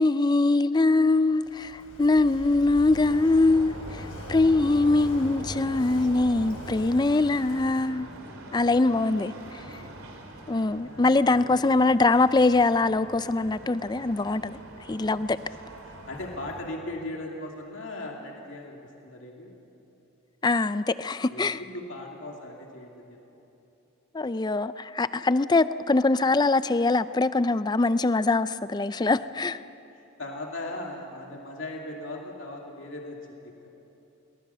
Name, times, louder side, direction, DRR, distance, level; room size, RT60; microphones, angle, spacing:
voice 1, 0.0-8.1 8.5-9.8 10.5-14.6 14.9-15.4 20.4-21.6 24.1-29.6, left 3 dB, 20° left, 0.4 m, -23 dB
Walk footsteps / Wind / Waves surf, 1.3-7.9, left 1 dB, 80° left, 4.3 m, -44 dB
sound 1, 2.8-16.6, right 1 dB, 80° right, 3.1 m, -43 dB
voice 2, 5.7-8.1 9.6-9.9 10.6-11.8 15.4-15.6 15.9-19.6 21.3-23.2 30.2-33.5, left 1 dB, 60° left, 2.4 m, -39 dB
22.5 x 19.0 x 6.9 m
head